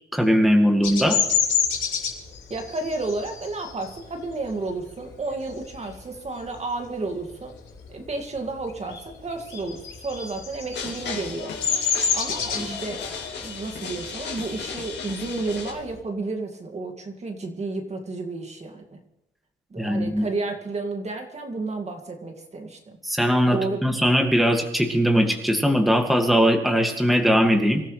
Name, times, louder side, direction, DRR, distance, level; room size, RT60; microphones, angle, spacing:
voice 1, 0.1-1.2 12.7-12.8 19.8-20.2 23.0-27.8, equal, ahead, 3 dB, 2.1 m, -20 dB
Bird vocalization bird call bird song, 0.8-6.0 6.5-6.8 7.1-8.3 8.6-16.0, left 7 dB, 75° left, 5.3 m, -28 dB
voice 2, 2.5-7.6 7.9-11.5 12.1-13.1 13.4-19.0 19.7-23.0 23.5-23.8, right 3 dB, 35° right, 3 dB, 2.2 m, -31 dB
sound 1, 10.7-15.7, left 5 dB, 60° left, 3.8 m, -35 dB
25.5 x 13.0 x 3.3 m, 0.86 s
cardioid pair, 90°, 20 cm